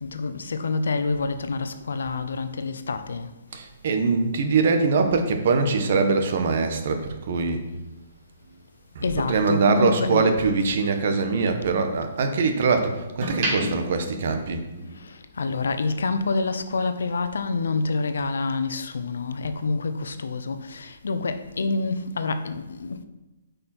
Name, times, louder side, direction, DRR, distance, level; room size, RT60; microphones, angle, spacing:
voice 1, 0.0-3.3 9.0-10.3 15.4-23.0, left 3 dB, 85° left, 0.7 m, -27 dB
voice 2, 3.5-7.6 8.9-14.6, right 4 dB, 50° right, 1.1 m, -23 dB
sound 1, 8.4-10.7 11.1-12.5 13.0-15.1 15.4-15.7, right 1 dB, 35° right, 2.5 m, -32 dB
8.6 x 5.2 x 4.4 m
hypercardioid pair, 160°, 0 cm